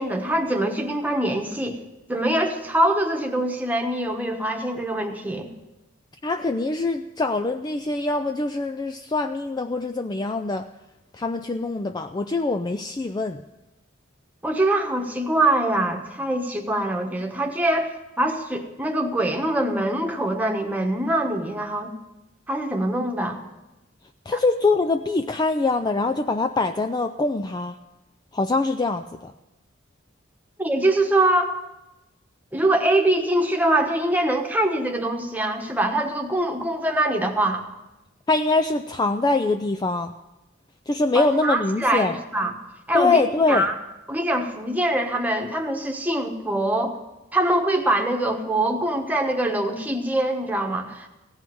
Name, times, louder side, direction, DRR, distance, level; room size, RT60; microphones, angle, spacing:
voice 1, 0.0-1.8 2.1-5.5 14.4-21.9 22.5-23.4 30.6-31.5 32.5-37.6 41.1-42.5 42.9-43.2 43.5-43.7 44.1-47.0 47.3-51.1, right 1 dB, 10° right, 2 dB, 1.2 m, -23 dB
voice 2, 6.2-10.7 11.1-13.4 24.3-27.8 28.3-29.3 38.3-40.1 40.9-42.2 42.9-43.7, left 3 dB, 20° left, 7 dB, 0.4 m, -23 dB
17.0 x 5.6 x 9.2 m, 1.0 s
head